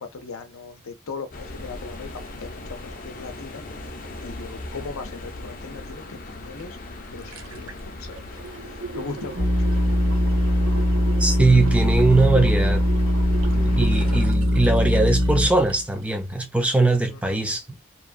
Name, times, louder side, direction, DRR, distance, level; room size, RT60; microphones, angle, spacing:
voice 1, 0.0-3.9 4.2-6.8 7.1-8.1 8.6-9.7 17.1-17.2, left 4 dB, 85° left, 0.6 m, -38 dB
sound 1, 1.3-14.2, left 2 dB, 40° left, 0.6 m, -38 dB
sound 2, 6.6-6.7 7.0-16.1 16.4-16.5, right 3 dB, 75° right, 0.6 m, -38 dB
sound 3, 9.4-15.8, equal, 60° right, 1.0 m, -21 dB
voice 2, 11.2-12.8 13.5-17.7, right 3 dB, 5° right, 0.4 m, -21 dB
2.9 x 2.2 x 2.4 m
head